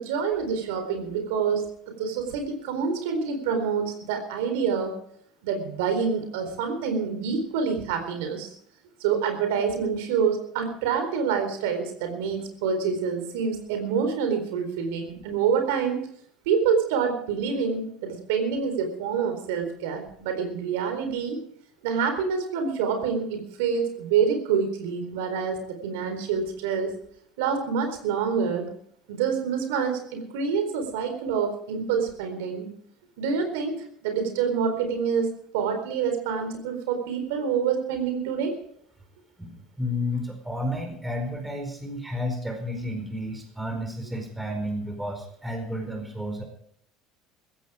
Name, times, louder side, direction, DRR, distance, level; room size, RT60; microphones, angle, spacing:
voice 1, 0.0-1.7 2.0-4.9 5.4-8.5 9.0-16.0 16.5-21.4 21.8-26.9 27.4-28.7 29.1-32.7 33.2-33.7 34.0-35.3 35.5-38.5, right 6 dB, 90° right, 6 dB, 4.2 m, -27 dB
voice 2, 39.4-46.4, left 1 dB, 5° right, 3 dB, 4.7 m, -31 dB
15.5 x 14.5 x 5.0 m, 0.65 s
supercardioid pair, 120°, 0 cm